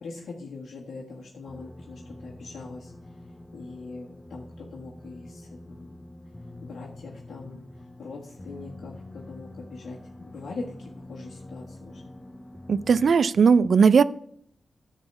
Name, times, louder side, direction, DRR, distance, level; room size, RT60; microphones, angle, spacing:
voice 1, 0.0-2.9 3.5-6.0 6.6-7.6 8.0-12.0, left 3 dB, 80° left, -2 dB, 1.5 m, -41 dB
sound 1, 1.5-13.1, left 1 dB, 15° left, 0.9 m, -45 dB
voice 2, 12.7-14.0, right 5 dB, 65° right, 18 dB, 0.4 m, -18 dB
10.5 x 4.1 x 7.1 m, 0.68 s
cardioid pair, 90°, 0 cm